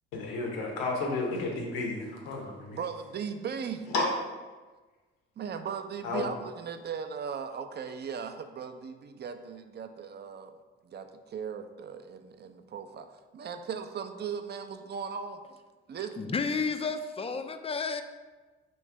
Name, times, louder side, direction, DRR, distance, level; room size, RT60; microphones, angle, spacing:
voice 1, 0.1-2.8 3.9-4.1 6.0-6.2, left 3 dB, 85° left, 0 dB, 1.0 m, -32 dB
voice 2, 2.7-3.9 5.4-10.5 10.8-13.1 13.3-15.4 15.9-16.3, right 6 dB, 35° right, 7 dB, 0.5 m, -38 dB
voice 3, 16.2-18.0, left 4 dB, 20° left, 8 dB, 0.4 m, -31 dB
3.2 x 3.1 x 4.6 m, 1.3 s
hypercardioid pair, 55°, 29 cm